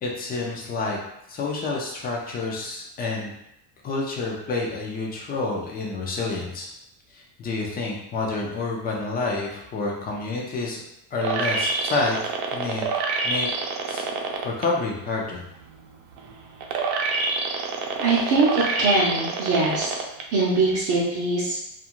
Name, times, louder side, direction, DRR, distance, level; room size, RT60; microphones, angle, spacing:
voice 1, 0.0-1.0 1.3-3.3 3.8-6.7 7.1-10.8 11.1-12.8 13.2-13.5 13.9-14.1 14.4-15.4, left 3 dB, 20° left, -2 dB, 0.4 m, -28 dB
sound 1, 11.2-14.6 15.1-20.2 20.7-20.8, right 4 dB, 80° right, 0.6 m, -27 dB
voice 2, 18.0-20.0 20.3-21.6, right 3 dB, 40° right, -7 dB, 0.6 m, -22 dB
2.4 x 2.4 x 2.9 m, 0.82 s
cardioid pair, 140°, 47 cm